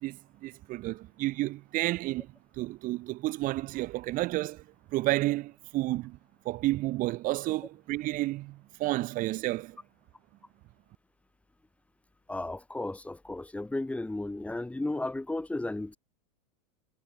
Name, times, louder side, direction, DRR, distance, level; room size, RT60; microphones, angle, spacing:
voice 1, 0.0-6.2 6.4-9.8, right 18 dB, 45° right, 2.2 m, -31 dB
voice 2, 12.3-16.0, left 2 dB, 5° left, 3.7 m, -34 dB
hypercardioid pair, 95°, 20 cm